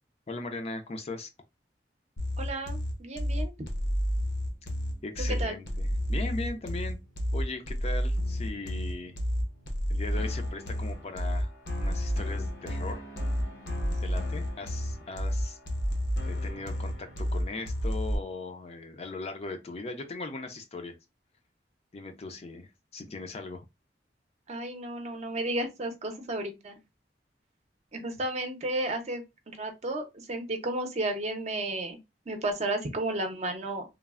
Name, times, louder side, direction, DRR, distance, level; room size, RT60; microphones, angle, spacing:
voice 1, 0.3-1.3 5.0-7.0 7.3-9.2 9.9-11.5 11.8-13.0 14.0-15.6 16.3-20.9 21.9-23.6, left 3 dB, 35° left, 0.4 m, -39 dB
sound 1, 2.2-18.2, equal, 70° left, 0.7 m, -31 dB
voice 2, 2.4-3.5 5.3-5.5 24.5-26.8 27.9-32.0 32.3-33.8, right 1 dB, 40° right, 0.6 m, -33 dB
3.1 x 2.0 x 2.3 m
head